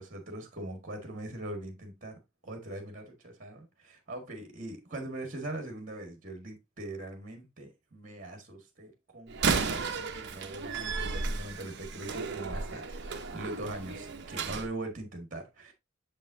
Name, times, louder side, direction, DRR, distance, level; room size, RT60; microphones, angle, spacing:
voice 1, 0.0-2.2 2.4-15.7, right 1 dB, 40° right, 1.6 m, -41 dB
Slam, 9.3-14.7, right 4 dB, 55° right, 0.8 m, -33 dB
7.0 x 5.3 x 2.6 m
head